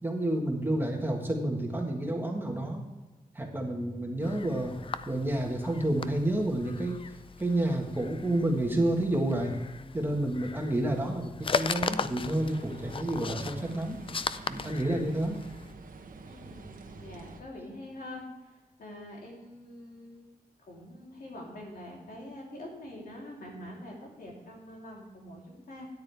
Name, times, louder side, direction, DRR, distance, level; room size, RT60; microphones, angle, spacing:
voice 1, 0.0-2.9 3.3-4.7 5.1-7.0 7.4-9.5 9.9-14.0 14.5-15.4, right 1 dB, 15° right, 1 dB, 1.5 m, -29 dB
sound 1, 4.2-15.7, left 5 dB, 35° left, 0.4 m, -38 dB
sound 2, 12.2-17.4, right 3 dB, 65° right, 1.0 m, -48 dB
voice 2, 16.2-18.5 18.8-20.3 20.6-25.9, left 1 dB, 75° left, -2 dB, 3.5 m, -45 dB
13.0 x 9.8 x 3.5 m, 1.2 s
wide cardioid pair, 150°, 15 cm